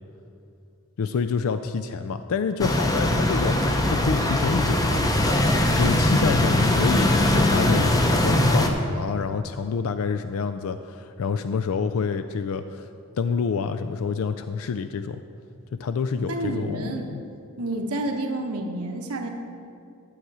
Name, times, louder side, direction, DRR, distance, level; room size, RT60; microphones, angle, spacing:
voice 1, 1.0-5.0 5.8-12.9 13.2-15.2 15.8-17.2, left 5 dB, 70° left, 10 dB, 0.3 m, -27 dB
sound 1, 2.6-8.7, left 1 dB, 15° left, 0.6 m, -21 dB
voice 2, 6.5-7.2 16.3-17.1 17.6-19.3, right 1 dB, 80° right, 3 dB, 1.1 m, -30 dB
11.5 x 7.8 x 4.8 m, 2.5 s
head